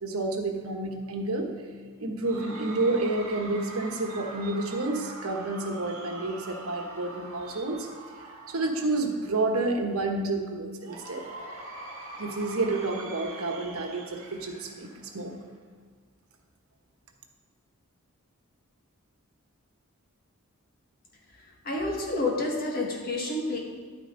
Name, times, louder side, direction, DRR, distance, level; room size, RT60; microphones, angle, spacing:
voice 1, 0.0-1.5 2.0-7.9 8.5-11.2 12.2-15.3, right 2 dB, 80° right, 3 dB, 1.2 m, -29 dB
Cheering / Crowd, 2.2-9.5 10.8-15.6, right 2 dB, 65° right, 2.0 m, -43 dB
voice 2, 21.6-23.6, left 2 dB, 40° left, -2 dB, 1.8 m, -29 dB
10.5 x 9.2 x 3.9 m, 1.5 s
head